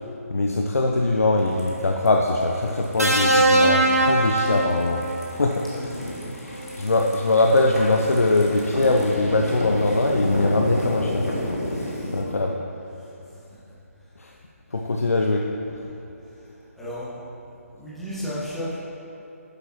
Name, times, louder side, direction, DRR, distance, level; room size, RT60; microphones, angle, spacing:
voice 1, 0.3-5.0 5.4-5.6 6.8-11.2 12.1-12.5 14.7-15.4, left 2 dB, 70° left, 0 dB, 0.6 m, -21 dB
sound 1, 1.4-12.2, left 1 dB, 85° left, 2.1 m, -32 dB
sound 2, 3.0-5.3 6.6-6.8, right 2 dB, 80° right, 1.1 m, -20 dB
voice 2, 16.8-17.3 17.7-18.8, equal, ahead, -10 dB, 1.5 m, -34 dB
10.5 x 8.0 x 3.0 m, 2.8 s
figure-of-eight pair, 145°, 8 cm